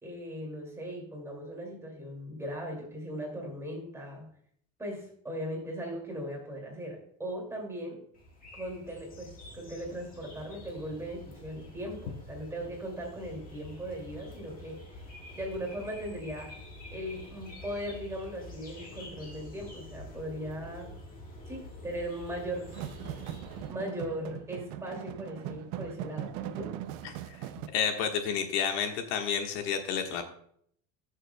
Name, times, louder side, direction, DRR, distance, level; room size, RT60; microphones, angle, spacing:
voice 1, 0.0-4.3 4.8-8.0 8.5-15.0 15.3-16.5 16.9-20.9 21.5-22.7 23.7-26.7, equal, 10° right, -1 dB, 2.3 m, -38 dB
sound 1, 8.1-23.7, left 1 dB, 25° left, 1.8 m, -47 dB
sound 2, 22.7-27.7, right 12 dB, 55° right, 0.5 m, -40 dB
voice 2, 27.0-27.4 27.7-30.2, left 7 dB, 80° left, 5 dB, 1.4 m, -30 dB
17.5 x 6.4 x 2.2 m, 0.65 s
cardioid pair, 165°, 34 cm